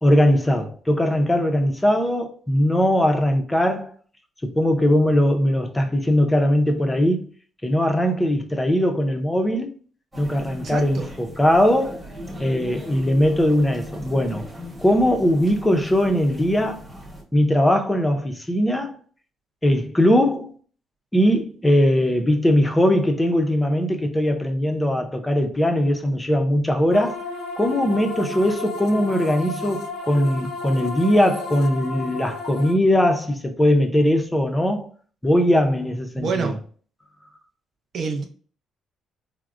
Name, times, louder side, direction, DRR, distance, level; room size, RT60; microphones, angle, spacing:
voice 1, 0.0-3.9 4.4-7.3 7.6-9.7 10.2-12.0 12.4-14.4 14.8-16.8 17.3-19.0 19.6-20.5 21.1-27.2 27.6-34.9 35.2-36.5, equal, 10° left, 0.5 m, -20 dB
sound 1, 10.1-17.2, equal, 5° right, 0.9 m, -39 dB
voice 2, 10.6-11.1 36.2-36.6 37.9-38.3, right 4 dB, 45° right, 0.5 m, -27 dB
sound 2, 26.9-32.7, left 3 dB, 80° left, 0.6 m, -33 dB
4.6 x 2.0 x 2.4 m
cardioid pair, 165°, 0 cm